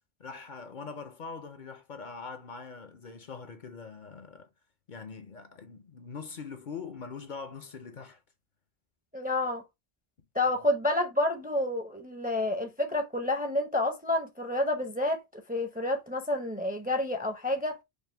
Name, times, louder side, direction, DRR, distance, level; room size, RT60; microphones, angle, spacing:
voice 1, 0.2-4.5 4.9-8.2, left 5 dB, 55° left, 0.7 m, -42 dB
voice 2, 9.1-9.6 10.3-17.8, left 1 dB, 10° right, 0.5 m, -29 dB
5.2 x 2.2 x 3.2 m
omnidirectional pair, 1.0 m